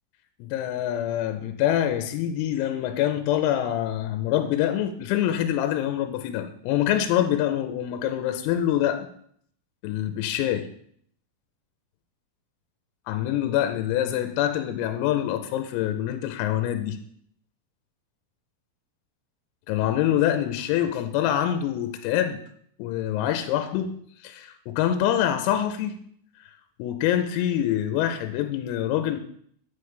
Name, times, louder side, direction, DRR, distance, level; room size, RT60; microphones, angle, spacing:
voice 1, 0.4-9.1 9.8-10.7 13.1-17.0 19.7-22.4 22.8-23.9 24.2-26.0 26.8-29.2, left 11 dB, 85° left, 7 dB, 3.4 m, -25 dB
9.7 x 9.0 x 3.2 m, 0.63 s
omnidirectional pair, 6.0 m